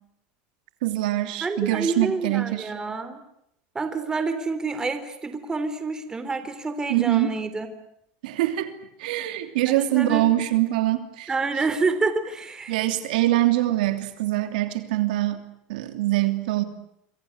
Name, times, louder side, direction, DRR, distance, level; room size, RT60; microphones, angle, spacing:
voice 1, 0.8-2.7 6.9-7.3 8.2-8.7 9.0-11.3 12.7-15.4 15.7-16.6, right 15 dB, 85° right, 9 dB, 3.1 m, -24 dB
voice 2, 1.4-3.2 3.8-7.7 9.7-10.3 11.3-12.8, right 3 dB, 15° right, 10 dB, 3.7 m, -28 dB
27.0 x 25.0 x 8.1 m, 0.77 s
supercardioid pair, 130°, 4 cm